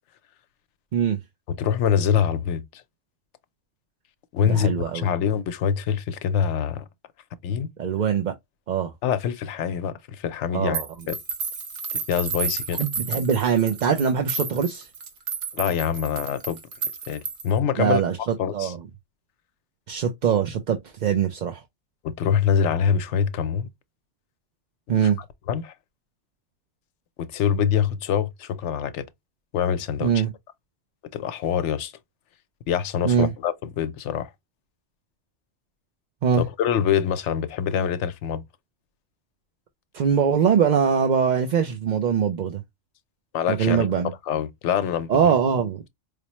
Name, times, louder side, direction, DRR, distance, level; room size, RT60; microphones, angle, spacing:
voice 1, 1.5-2.8 4.3-6.8 7.4-7.7 9.0-10.8 11.1-11.2 11.9-12.8 15.5-16.6 17.1-18.0 18.4-18.7 22.0-23.7 25.5-25.7 27.2-29.1 29.5-30.1 31.1-31.9 32.7-34.3 36.6-38.4 43.3-43.9 44.3-45.1, left 8 dB, 90° left, 0.9 m, -24 dB
voice 2, 4.4-5.1 7.8-8.3 8.7-8.9 10.5-10.9 12.8-14.9 17.8-18.8 19.9-21.6 24.9-25.2 30.0-30.3 33.0-33.3 36.2-36.4 39.9-42.6 43.5-44.1 45.1-45.8, right 7 dB, 50° right, 0.6 m, -22 dB
sound 1, 10.7-17.6, right 5 dB, 85° right, 1.3 m, -32 dB
4.9 x 2.1 x 2.9 m
omnidirectional pair, 1.2 m